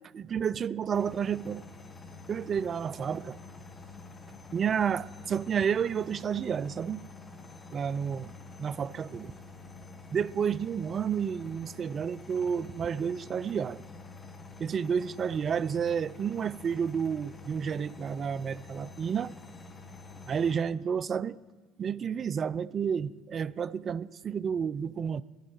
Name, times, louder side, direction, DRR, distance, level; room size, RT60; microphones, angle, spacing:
voice 1, 0.1-1.7 2.3-3.4 4.5-7.0 7.7-8.3 8.6-9.3 10.1-13.8 14.6-19.3 20.3-21.4 21.8-25.2, right 7 dB, 40° right, 0.3 m, -30 dB
sound 1, 0.9-20.6, left 3 dB, 25° left, 1.4 m, -48 dB
10.5 x 6.3 x 8.9 m
hypercardioid pair, 75°, 0 cm